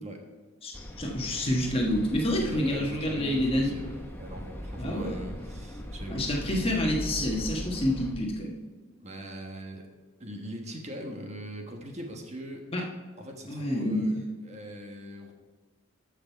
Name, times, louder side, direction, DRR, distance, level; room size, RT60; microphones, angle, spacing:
voice 1, 0.6-3.7 4.8-5.2 6.1-8.6 12.7-12.8 13.5-14.1, left 1 dB, 25° left, 0 dB, 1.3 m, -28 dB
sound 1, 0.7-8.1, equal, 10° left, 1.1 m, -40 dB
voice 2, 2.4-6.3 9.0-9.8 10.2-12.7 13.2-15.3, equal, 30° right, 2 dB, 1.2 m, -41 dB
14.0 x 6.1 x 4.5 m, 1.4 s
head